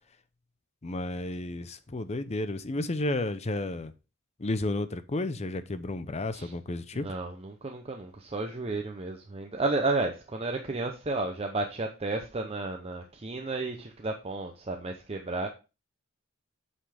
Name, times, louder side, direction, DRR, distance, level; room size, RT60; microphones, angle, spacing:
voice 1, 0.8-3.9 4.4-7.1, left 2 dB, 30° left, 0.6 m, -32 dB
voice 2, 7.0-15.5, right 3 dB, 30° right, 0.7 m, -32 dB
8.2 x 5.7 x 3.4 m
head